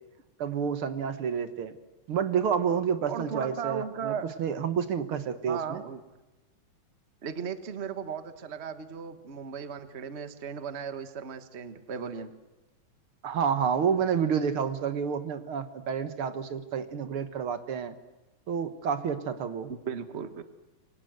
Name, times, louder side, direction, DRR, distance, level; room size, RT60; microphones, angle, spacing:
voice 1, 0.4-1.8 2.1-5.8 13.2-17.9 18.5-19.7, right 7 dB, 55° right, 11 dB, 1.7 m, -29 dB
voice 2, 3.1-4.3 5.5-6.0 7.2-12.3 19.7-20.4, right 6 dB, 85° right, 10 dB, 0.5 m, -36 dB
27.5 x 24.0 x 7.9 m, 1.1 s
omnidirectional pair, 3.7 m